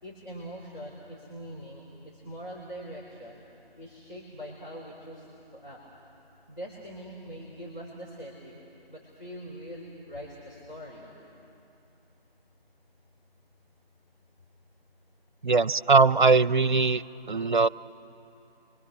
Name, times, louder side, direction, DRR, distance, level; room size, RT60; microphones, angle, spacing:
voice 1, 0.0-3.4 3.8-5.3 5.5-5.8 6.5-8.6 8.9-11.1, equal, 50° left, -4 dB, 4.7 m, -42 dB
voice 2, 15.4-17.0 17.3-17.7, right 4 dB, 50° right, 18 dB, 0.6 m, -20 dB
27.5 x 24.5 x 6.7 m, 2.7 s
figure-of-eight pair, 160°, 31 cm